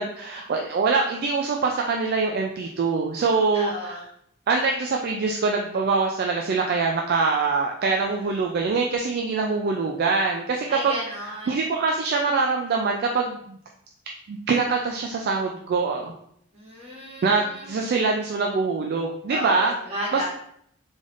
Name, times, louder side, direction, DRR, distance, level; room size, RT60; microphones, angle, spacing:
voice 1, 0.0-4.0 4.5-11.0 11.2-13.6 14.3-16.1 17.2-19.7 20.1-20.2, right 4 dB, 50° right, 1 dB, 0.3 m, -24 dB
voice 2, 3.5-4.0 10.7-11.5 16.5-17.7 19.3-20.2, left 1 dB, 30° right, -5 dB, 1.3 m, -33 dB
3.9 x 3.4 x 2.4 m, 0.68 s
head